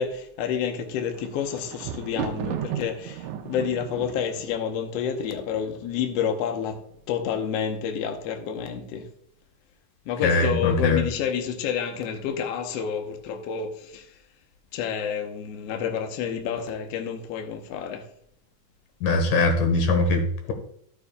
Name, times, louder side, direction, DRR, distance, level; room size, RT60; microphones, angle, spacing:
voice 1, 0.0-6.8 7.1-9.1 10.0-14.2 14.7-18.1, left 7 dB, 70° left, 1.7 m, -29 dB
Thunder, 0.8-6.0 6.7-7.2 7.5-7.6, right 9 dB, 80° right, 2.1 m, -35 dB
voice 2, 10.2-11.0 19.0-20.5, left 3 dB, 85° left, 3.0 m, -21 dB
14.5 x 6.9 x 2.3 m
omnidirectional pair, 3.7 m